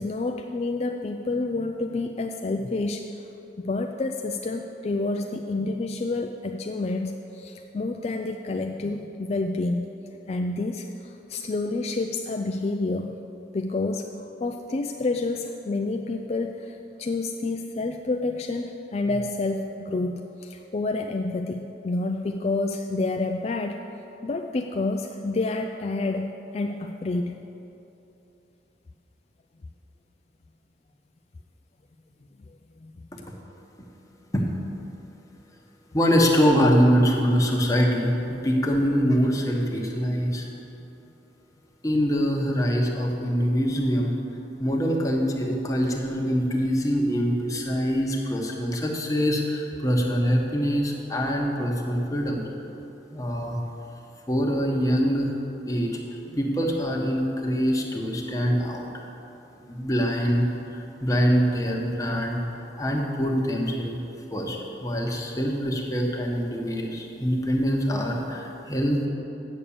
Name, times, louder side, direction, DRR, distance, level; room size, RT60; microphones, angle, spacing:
voice 1, 0.0-3.1 3.6-9.9 10.3-13.2 13.5-23.8 24.2-26.3 26.5-27.4 32.8-32.9 56.3-56.4, left 2 dB, 35° left, 4 dB, 0.3 m, -29 dB
voice 2, 35.9-40.5 41.8-44.2 44.6-52.4 53.1-53.6 54.3-55.3 55.6-55.9 56.4-59.0 59.7-60.5 60.7-62.4 62.8-64.0 64.3-69.0, equal, 20° left, -1 dB, 1.1 m, -24 dB
8.4 x 6.8 x 8.6 m, 3.0 s
head